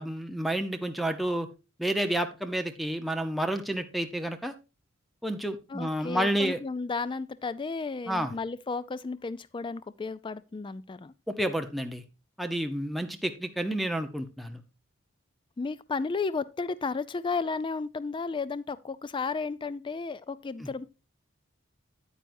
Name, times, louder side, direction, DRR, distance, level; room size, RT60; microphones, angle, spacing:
voice 1, 0.0-1.5 1.8-4.5 5.2-6.6 8.1-8.3 11.3-12.0 12.4-14.6, right 1 dB, ahead, 0.7 m, -30 dB
voice 2, 5.7-11.1 15.6-20.8, left 4 dB, 25° left, 0.3 m, -33 dB
9.2 x 9.0 x 2.6 m
head